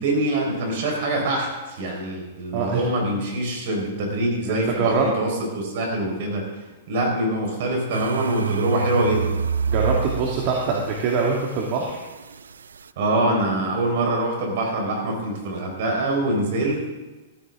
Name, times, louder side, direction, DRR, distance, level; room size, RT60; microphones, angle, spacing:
voice 1, 0.0-6.5 6.9-9.4 13.0-16.9, right 1 dB, 60° right, 1 dB, 4.7 m, -24 dB
voice 2, 4.5-5.1 9.7-12.0, right 4 dB, 45° right, -1 dB, 2.1 m, -24 dB
sound 1, 7.9-12.8, right 6 dB, 85° right, 0.3 m, -28 dB
14.0 x 14.0 x 3.7 m, 1.2 s
hypercardioid pair, 120°, 0 cm